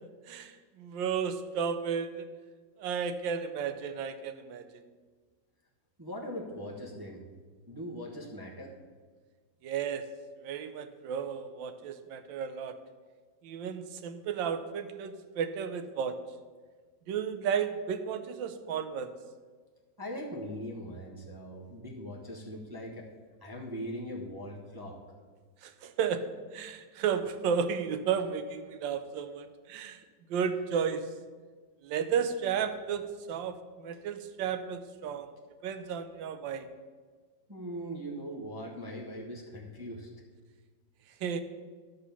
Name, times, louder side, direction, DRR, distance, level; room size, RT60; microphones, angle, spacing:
voice 1, 0.3-2.2 2.8-4.7 9.6-10.0 10.4-12.8 13.4-16.2 17.1-19.1 25.6-30.0 30.3-31.0 31.8-35.3 35.6-36.7 41.2-41.4, right 7 dB, 85° right, 9 dB, 1.4 m, -33 dB
voice 2, 6.0-7.2 7.7-8.7 20.0-23.1 23.4-25.0 37.5-40.1, equal, 15° right, -2 dB, 0.8 m, -40 dB
11.5 x 4.1 x 6.9 m, 1.5 s
omnidirectional pair, 2.0 m